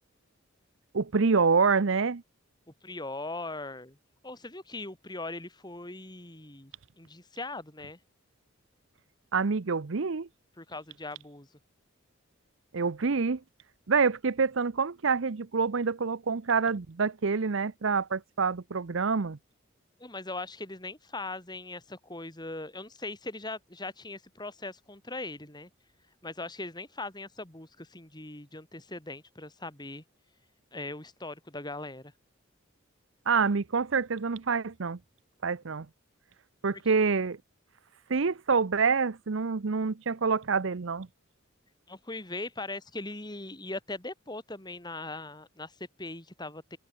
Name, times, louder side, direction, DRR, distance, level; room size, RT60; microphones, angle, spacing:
voice 1, 0.9-2.2 9.3-10.3 12.7-13.4 13.9-19.4 33.3-35.0 35.4-35.9 36.6-37.4 38.1-41.1, right 5 dB, 65° right, 0.7 m, -27 dB
voice 2, 2.8-4.0 4.2-8.0 10.6-11.5 20.0-25.7 26.2-30.0 30.7-32.1 36.7-36.8 41.9-46.8, left 2 dB, 20° left, 4.2 m, -40 dB
head